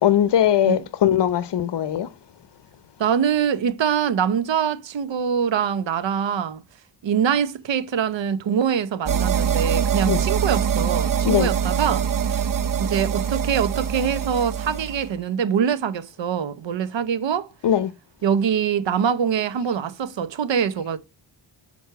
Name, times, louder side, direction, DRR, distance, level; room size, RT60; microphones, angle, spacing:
voice 1, 0.0-2.1 10.1-10.2 11.2-11.5 17.6-17.9, left 10 dB, 70° left, 0.8 m, -20 dB
voice 2, 3.0-6.6 7.0-12.0 12.3-12.5 12.8-17.5 18.2-21.0, right 7 dB, 85° right, 0.8 m, -24 dB
sound 1, 9.1-15.1, right 8 dB, 50° right, 0.7 m, -24 dB
6.1 x 4.4 x 5.7 m
cardioid pair, 70°, 43 cm